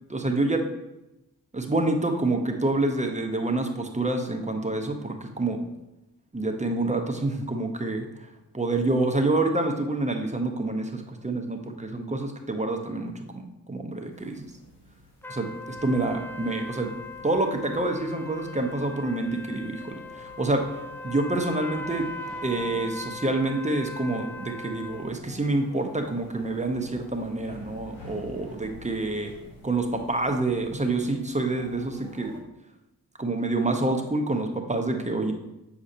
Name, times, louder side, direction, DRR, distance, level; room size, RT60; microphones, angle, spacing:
voice 1, 0.1-0.6 1.5-5.6 6.3-8.1 8.5-14.5 15.3-16.9 17.2-20.6 21.0-22.1 22.4-29.3 29.6-32.3 33.2-35.3, right 2 dB, 20° right, 3 dB, 1.0 m, -27 dB
sound 1, 14.1-32.4, equal, 85° left, 1.3 m, -49 dB
sound 2, 15.2-25.1, left 2 dB, 5° left, 0.4 m, -40 dB
7.7 x 4.8 x 2.8 m, 0.91 s
supercardioid pair, 50°, 38 cm